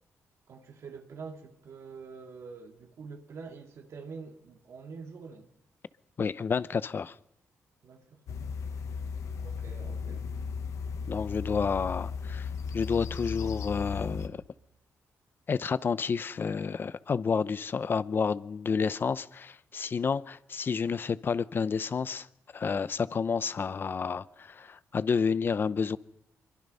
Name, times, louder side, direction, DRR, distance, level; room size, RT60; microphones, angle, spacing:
voice 1, 0.5-5.5 7.8-8.4 9.4-10.3, right 5 dB, 65° right, 2.6 m, -46 dB
voice 2, 6.2-7.2 11.1-14.4 15.5-22.3 22.5-26.0, left 5 dB, 45° left, 0.7 m, -30 dB
sound 1, 8.3-14.3, left 5 dB, 75° left, 1.5 m, -36 dB
25.5 x 23.0 x 5.6 m
cardioid pair, 110°, 5 cm